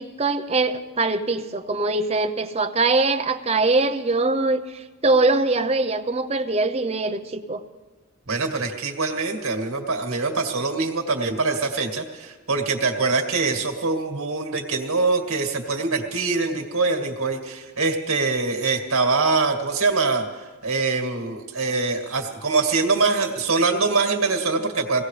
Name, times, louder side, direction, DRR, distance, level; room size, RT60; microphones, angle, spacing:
voice 1, 0.0-7.6, right 3 dB, 30° right, 7 dB, 0.6 m, -22 dB
voice 2, 8.3-20.3 20.6-25.0, right 3 dB, 75° right, 3 dB, 2.0 m, -23 dB
23.0 x 17.5 x 3.3 m, 1.3 s
head